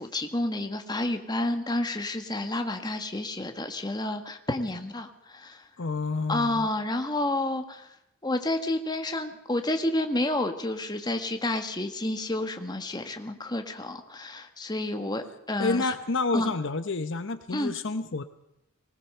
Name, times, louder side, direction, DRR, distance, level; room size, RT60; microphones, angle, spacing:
voice 1, 0.0-5.6 6.3-7.9 8.2-15.9 16.3-16.5 17.5-17.7, left 1 dB, 20° left, 6 dB, 1.6 m, -30 dB
voice 2, 5.8-6.7 15.6-18.2, left 3 dB, 55° left, 10 dB, 0.8 m, -29 dB
20.0 x 19.5 x 6.7 m, 0.81 s
head